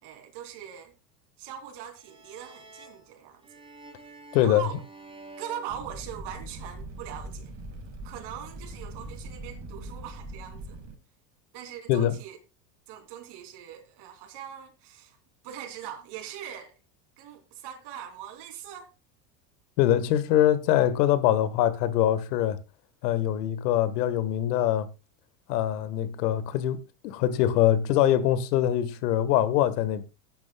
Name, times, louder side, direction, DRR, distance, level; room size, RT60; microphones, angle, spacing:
voice 1, 0.0-0.9 1.4-3.5 4.4-4.8 5.4-7.6 8.0-10.8 11.5-12.4 12.9-15.2 15.4-16.7 17.2-18.9, right 9 dB, 55° right, 3.3 m, -41 dB
sound 1, 2.0-6.6, right 3 dB, 10° right, 3.2 m, -49 dB
voice 2, 4.3-4.6 11.9-12.1 19.8-22.6 23.0-24.9 25.5-26.8 27.0-30.0, left 11 dB, 70° left, 1.6 m, -23 dB
Fire, 5.7-11.0, right 1 dB, 35° right, 4.7 m, -41 dB
16.5 x 10.5 x 2.3 m
hypercardioid pair, 100°, 49 cm